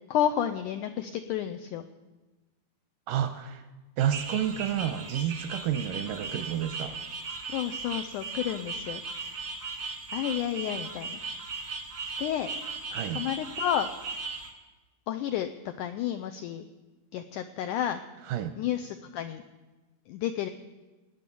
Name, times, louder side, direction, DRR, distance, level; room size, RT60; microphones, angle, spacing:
voice 1, 0.1-1.8 7.5-9.3 10.1-11.2 12.2-12.5 13.1-13.9 15.1-15.5 15.8-16.7 17.1-18.0 18.6-19.4 20.1-20.5, left 11 dB, 85° left, 8 dB, 1.8 m, -31 dB
voice 2, 3.1-3.6 4.0-7.0 12.9-13.2 18.3-18.6, right 10 dB, 80° right, 9 dB, 2.0 m, -30 dB
sound 1, 4.0-14.5, right 4 dB, 55° right, 1.0 m, -37 dB
19.0 x 9.4 x 7.0 m, 1.2 s
omnidirectional pair, 4.3 m